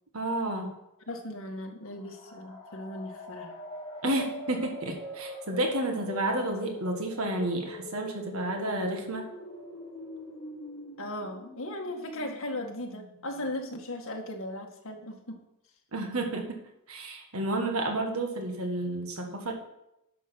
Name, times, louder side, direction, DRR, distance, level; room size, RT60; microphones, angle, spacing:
voice 1, 0.1-0.8 4.0-9.3 15.9-16.6 16.9-19.5, right 1 dB, 75° right, 3 dB, 1.7 m, -31 dB
voice 2, 1.1-3.5 4.0-4.1 11.0-15.4, left 1 dB, 65° left, 2 dB, 2.0 m, -37 dB
sound 1, 1.9-13.5, left 1 dB, 25° left, 2.7 m, -43 dB
11.0 x 6.8 x 6.0 m, 0.85 s
head